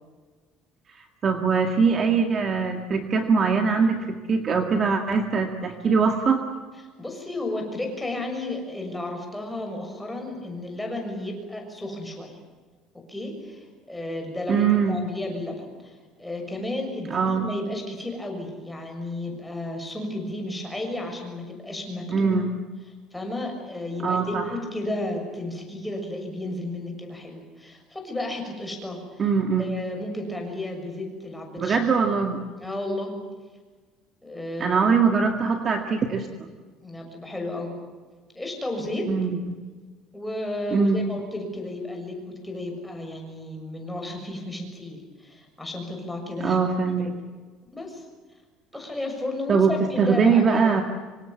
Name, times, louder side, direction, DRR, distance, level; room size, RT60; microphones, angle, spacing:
voice 1, 1.2-6.6 14.5-15.0 17.1-17.5 22.1-22.5 24.0-24.5 29.2-29.7 31.6-32.4 34.6-36.5 39.1-39.6 40.7-41.0 46.4-47.2 49.5-50.8, right 5 dB, 30° right, 5 dB, 2.0 m, -22 dB
voice 2, 7.0-12.4 13.1-22.3 23.1-29.2 29.6-31.8 32.6-33.1 34.2-34.8 36.8-37.7 38.3-39.1 40.1-46.6 47.0-47.1 47.7-48.0 48.7-50.8, left 1 dB, 5° left, 2 dB, 6.7 m, -33 dB
26.0 x 25.5 x 7.3 m, 1.4 s
cardioid pair, 155°, 0 cm